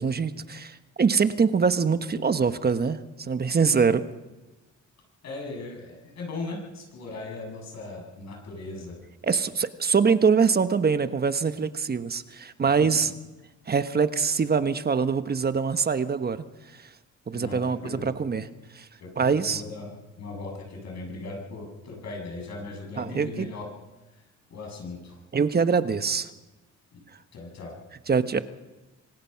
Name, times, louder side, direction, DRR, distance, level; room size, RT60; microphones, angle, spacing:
voice 1, 0.0-4.0 9.2-13.1 13.7-16.4 17.3-18.5 18.7-18.9 19.2-19.6 23.0-23.5 25.3-26.3 28.1-28.4, right 5 dB, 30° right, 11 dB, 1.2 m, -24 dB
voice 2, 5.2-9.0 12.8-13.1 17.3-18.1 19.0-23.7 24.5-25.2 26.9-27.0 27.3-27.8, left 3 dB, 60° left, 1 dB, 7.9 m, -38 dB
25.0 x 18.0 x 5.8 m, 1.1 s
cardioid pair, 90°, 30 cm